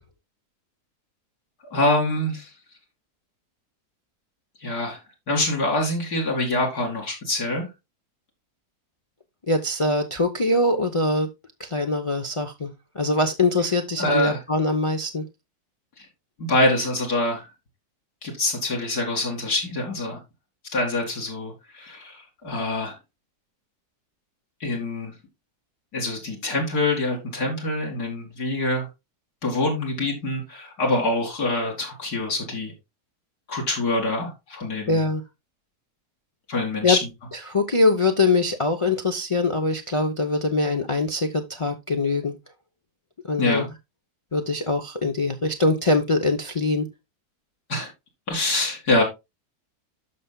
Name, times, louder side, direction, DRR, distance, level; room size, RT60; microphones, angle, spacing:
voice 1, 1.7-2.5 4.6-5.0 5.3-7.7 14.0-14.4 16.0-16.1 16.4-17.4 18.2-20.2 20.7-23.0 24.6-25.1 25.9-28.9 29.4-32.7 33.5-35.0 36.5-37.0 43.4-43.6 47.7-47.9 48.3-49.0, left 2 dB, 70° left, 2.8 m, -25 dB
voice 2, 9.5-11.3 11.6-15.2 34.9-35.2 36.8-37.0 37.5-42.3 43.3-43.7 44.3-46.9, left 2 dB, 35° left, 0.5 m, -23 dB
13.0 x 5.6 x 2.2 m
omnidirectional pair, 1.7 m